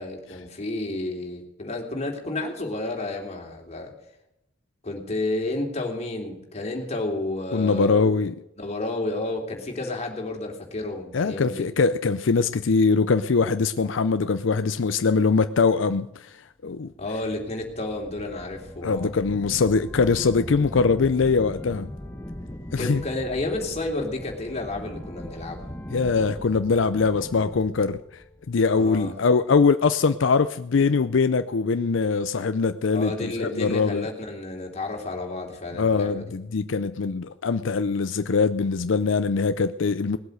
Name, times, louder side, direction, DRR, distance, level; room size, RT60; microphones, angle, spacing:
voice 1, 0.0-3.9 4.8-8.1 8.6-11.6 17.0-19.1 22.8-25.7 28.7-29.1 32.9-36.2, left 2 dB, 35° left, 3.2 m, -31 dB
voice 2, 7.5-8.4 11.1-16.9 18.8-21.9 22.7-23.0 25.9-28.0 28.5-34.1 35.7-40.2, left 4 dB, 80° left, 0.5 m, -22 dB
sound 1, 17.0-29.1, left 1 dB, 15° left, 1.1 m, -39 dB
19.0 x 8.1 x 7.9 m
head